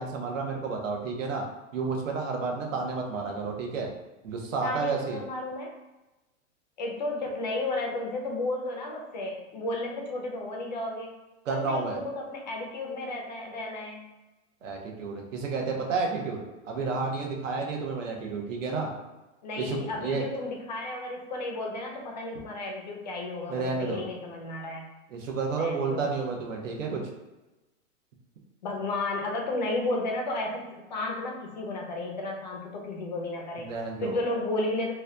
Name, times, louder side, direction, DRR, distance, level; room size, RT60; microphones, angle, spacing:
voice 1, 0.0-1.4 1.7-3.9 4.2-5.2 11.4-12.0 14.6-18.9 19.6-20.2 23.5-24.0 25.1-27.1 33.6-34.2, right 4 dB, 75° right, 1 dB, 1.0 m, -31 dB
voice 2, 4.6-5.7 6.8-11.1 11.5-14.1 19.4-24.9 25.6-26.1 28.6-33.7 34.0-34.9, left 2 dB, 35° left, 1 dB, 0.5 m, -33 dB
3.1 x 2.2 x 3.8 m, 1.1 s
supercardioid pair, 175°, 39 cm